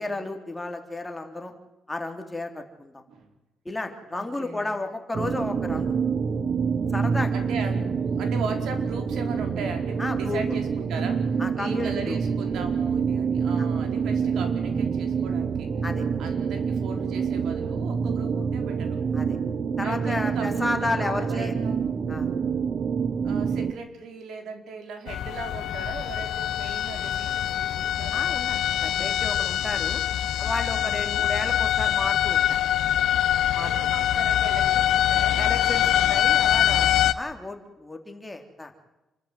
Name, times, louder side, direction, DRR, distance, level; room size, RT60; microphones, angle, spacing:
voice 1, 0.0-1.5 1.9-3.0 3.6-5.9 6.9-7.3 10.0-10.4 11.4-12.2 13.6-13.7 15.8-16.0 19.1-19.4 19.8-21.5 22.1-22.3 28.1-30.0 30.4-32.6 33.5-33.7 35.3-38.7, left 2 dB, 15° left, 5 dB, 3.3 m, -32 dB
voice 2, 4.1-4.8 7.3-15.7 16.2-19.0 19.8-22.0 23.2-28.2 30.8-31.3 33.6-35.6, right 4 dB, 80° right, 5 dB, 4.7 m, -38 dB
sound 1, 5.1-23.7, right 6 dB, 45° right, 1.2 m, -27 dB
sound 2, 25.1-37.1, left 11 dB, 80° left, 1.2 m, -24 dB
28.0 x 13.5 x 9.2 m, 0.99 s
cardioid pair, 120°, 0 cm